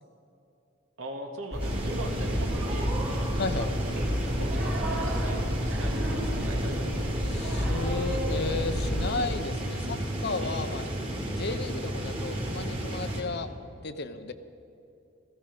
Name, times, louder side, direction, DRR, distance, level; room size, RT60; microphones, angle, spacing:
voice 1, 1.0-3.1 3.6-4.0 4.4-7.0 10.4-10.8, right 1 dB, 70° right, 2 dB, 2.0 m, -40 dB
sound 1, 1.5-9.1, equal, 55° right, 3.3 m, -30 dB
sound 2, 1.6-13.2, right 1 dB, 30° right, 2.7 m, -33 dB
voice 2, 7.2-10.0 10.2-10.8 11.4-13.5 13.8-14.3, left 3 dB, 55° left, 10 dB, 0.8 m, -34 dB
17.0 x 15.0 x 5.3 m, 2.7 s
head